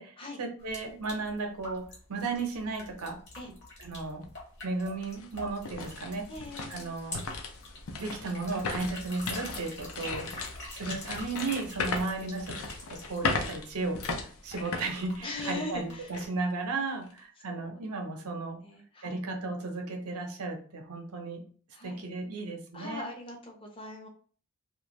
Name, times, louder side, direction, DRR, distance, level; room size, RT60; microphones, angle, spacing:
voice 1, 0.0-1.8 2.1-3.2 3.8-4.2 4.6-6.3 6.7-7.2 8.0-10.3 10.7-12.5 12.9-14.0 14.4-18.6 19.0-21.4 21.8-23.1, right 3 dB, 90° right, 3 dB, 0.7 m, -34 dB
sound 1, 0.6-16.3, left 2 dB, 50° left, 1.0 m, -46 dB
sound 2, 4.2-4.3 4.8-15.7 16.1-16.3 16.9-17.2, left 4 dB, 75° left, 0.5 m, -37 dB
voice 2, 6.3-6.9 10.0-10.1 11.8-12.0 15.2-16.1 17.5-17.8 18.6-19.2 21.7-22.0 22.7-24.1, left 2 dB, 25° left, 0 dB, 0.6 m, -41 dB
2.5 x 2.2 x 3.0 m, 0.43 s
head